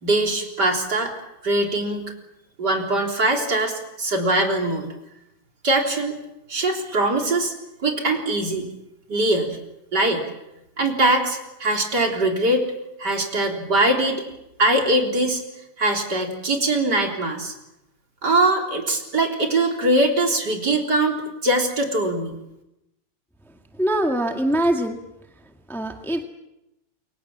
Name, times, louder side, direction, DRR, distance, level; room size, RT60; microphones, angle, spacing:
voice 1, 0.0-1.1 1.4-2.1 2.6-4.9 5.6-6.2 6.5-7.5 7.8-8.7 9.1-9.6 9.9-10.2 10.8-12.6 13.0-14.2 14.6-15.4 15.8-17.5 18.2-22.3, right 2 dB, 55° right, 2 dB, 4.3 m, -22 dB
voice 2, 23.8-25.0 25.7-26.2, right 1 dB, ahead, 4 dB, 1.7 m, -23 dB
28.0 x 23.5 x 7.4 m, 0.89 s
omnidirectional pair, 2.2 m